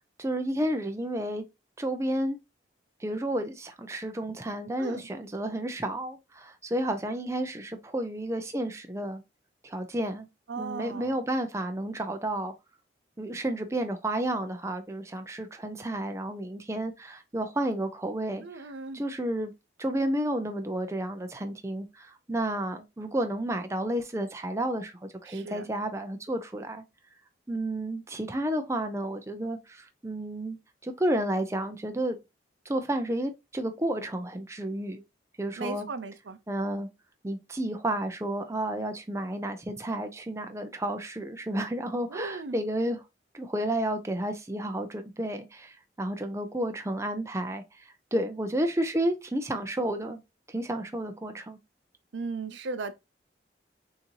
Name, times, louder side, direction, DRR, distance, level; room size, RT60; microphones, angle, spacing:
voice 1, 0.2-1.4 1.8-2.4 3.0-9.2 9.6-10.3 10.6-12.5 13.2-19.5 19.8-26.8 27.5-30.6 30.8-32.2 32.7-35.0 35.4-35.9 36.5-36.9 37.2-43.0 43.3-50.2 50.5-51.6, right 1 dB, 15° right, 0.5 m, -31 dB
voice 2, 10.5-11.2 18.4-19.0 25.3-25.7 35.6-36.4 42.1-42.6 52.1-52.9, right 4 dB, 80° right, 0.6 m, -37 dB
6.4 x 2.7 x 2.9 m
head